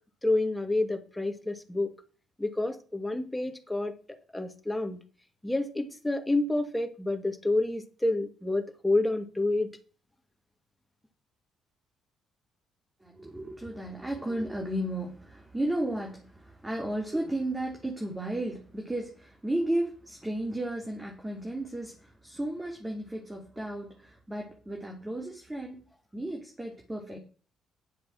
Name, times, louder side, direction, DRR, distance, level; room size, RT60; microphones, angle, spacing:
voice 1, 0.2-1.9 2.4-5.0 5.4-9.7, left 2 dB, 10° left, 5 dB, 2.4 m, -29 dB
voice 2, 13.0-25.9 26.1-27.2, right 1 dB, 15° right, 1 dB, 2.8 m, -34 dB
10.5 x 7.5 x 6.0 m, 0.39 s
supercardioid pair, 60°, 0 cm